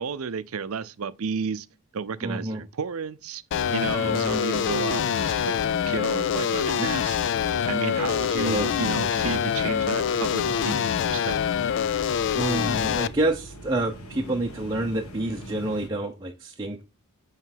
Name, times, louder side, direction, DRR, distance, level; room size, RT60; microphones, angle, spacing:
voice 1, 0.0-1.7 1.9-3.4 3.7-7.2 7.7-11.9, right 5 dB, 70° right, 0.6 m, -32 dB
voice 2, 2.2-2.6 4.0-4.4 8.3-8.7 12.4-16.8, right 2 dB, 20° right, 0.7 m, -28 dB
sound 1, 3.5-13.1, left 8 dB, 55° left, 0.3 m, -25 dB
sound 2, 8.0-15.9, equal, 75° left, 1.4 m, -42 dB
9.2 x 3.2 x 5.9 m
head